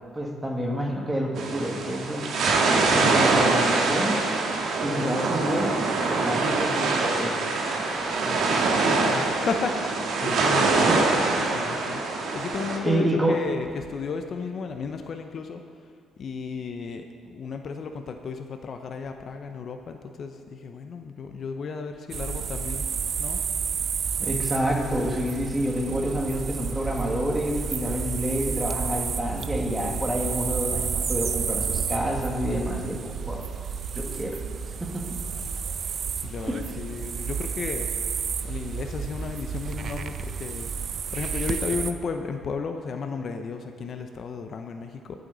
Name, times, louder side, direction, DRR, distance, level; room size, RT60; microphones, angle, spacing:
voice 1, 0.1-2.4 2.9-4.2 4.8-5.7 6.1-7.4 10.9-11.0 12.8-13.4 24.2-33.4 33.9-34.4 34.8-35.0 36.5-36.6, equal, 10° right, 0 dB, 1.8 m, -28 dB
sound 1, 1.4-12.8, right 3 dB, 65° right, 1.7 m, -24 dB
voice 2, 8.7-10.9 11.4-12.0 12.3-15.6 16.2-22.8 23.2-23.4 35.5-37.9 38.4-40.7 41.1-45.2, left 5 dB, 50° left, 6 dB, 0.7 m, -33 dB
sound 2, 22.1-41.9, right 6 dB, 50° right, 0.6 m, -31 dB
19.5 x 8.0 x 4.0 m, 2.2 s
cardioid pair, 110°, 0 cm